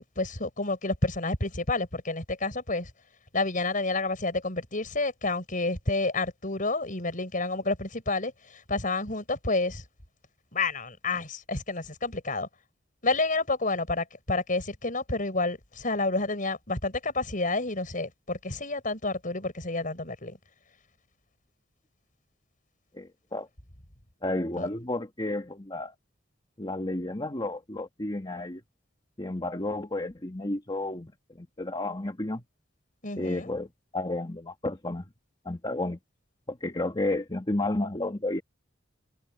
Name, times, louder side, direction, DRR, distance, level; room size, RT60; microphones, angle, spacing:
voice 1, 0.0-2.9 3.3-9.8 10.5-12.5 13.0-20.4 24.6-24.7 33.0-33.5, left 3 dB, 45° left, 6.5 m, -29 dB
voice 2, 22.9-23.5 24.2-25.9 26.6-28.6 29.2-32.4 33.2-33.7 33.9-35.0 35.4-36.0 36.5-38.4, left 2 dB, 25° left, 1.8 m, -32 dB
head